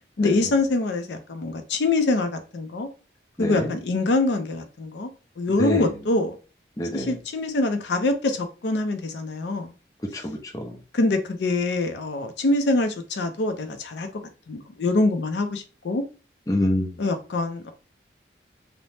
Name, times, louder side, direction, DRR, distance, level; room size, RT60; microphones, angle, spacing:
voice 1, 0.2-2.9 3.4-5.1 5.4-6.4 6.9-9.7 10.9-14.1 14.5-16.0 17.0-17.7, left 2 dB, 80° left, 0.5 m, -24 dB
voice 2, 3.4-3.7 5.6-5.9 6.8-7.1 10.1-10.8 16.5-16.9, left 1 dB, 20° left, 0.4 m, -26 dB
2.7 x 2.0 x 3.2 m
head